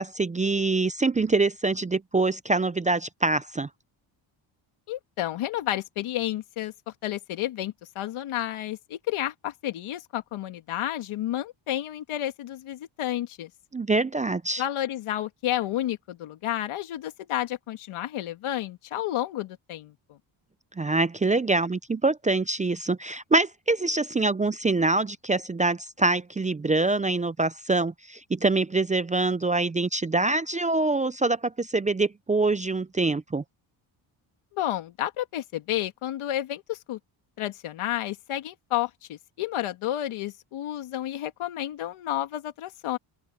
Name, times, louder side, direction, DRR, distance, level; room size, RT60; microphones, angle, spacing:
voice 1, 0.0-3.7 13.7-14.6 20.8-33.4, right 3 dB, 15° right, 0.5 m, -25 dB
voice 2, 4.9-13.5 14.6-20.2 34.5-37.0 37.4-43.0, left 13 dB, 80° left, 2.2 m, -31 dB
open air
cardioid pair, 105°, 49 cm